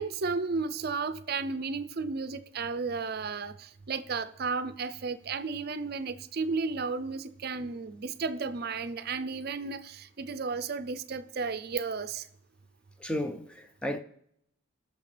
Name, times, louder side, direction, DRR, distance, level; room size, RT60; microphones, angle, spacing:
voice 1, 0.0-12.3, right 4 dB, 50° right, 0.5 m, -33 dB
voice 2, 13.0-14.0, left 1 dB, 5° left, 0.6 m, -33 dB
17.5 x 6.5 x 3.3 m
head